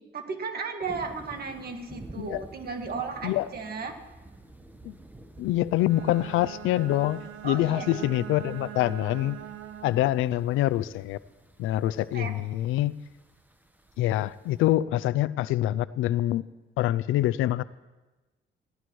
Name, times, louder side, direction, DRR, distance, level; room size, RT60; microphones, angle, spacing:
voice 1, 0.1-4.0 7.4-8.1 12.1-12.3, right 4 dB, 50° right, 4 dB, 1.9 m, -35 dB
sound 1, 0.8-14.7, right 1 dB, 10° right, 1.2 m, -51 dB
voice 2, 5.4-9.4 9.8-11.2 11.6-13.0 14.0-16.4 16.8-17.6, left 14 dB, 90° left, 17 dB, 0.5 m, -25 dB
Bowed string instrument, 5.7-10.2, right 12 dB, 90° right, 0.9 m, -42 dB
19.0 x 15.5 x 3.2 m, 1.1 s
cardioid pair, 90°, 20 cm